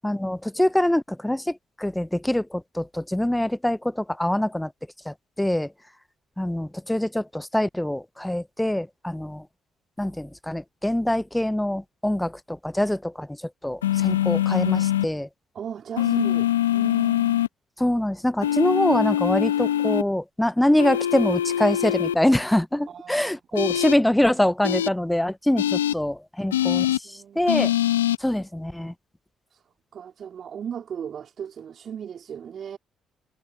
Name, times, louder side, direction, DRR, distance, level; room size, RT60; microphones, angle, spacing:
voice 1, 0.0-4.7 5.1-5.7 6.4-9.4 10.0-13.3 13.6-15.3 17.8-27.7 28.2-28.9, left 1 dB, 5° left, 1.0 m, -24 dB
sound 1, 13.8-15.0 16.0-17.5 18.4-20.0 20.8-22.1 23.5-23.9 24.6-24.9 25.6-25.9 26.5-27.0 27.5-28.2, left 12 dB, 85° left, 1.5 m, -23 dB
voice 2, 15.5-17.4 22.9-23.7 27.0-27.5 29.5-29.6 29.9-32.8, right 8 dB, 55° right, 3.7 m, -37 dB
hypercardioid pair, 45°, 0 cm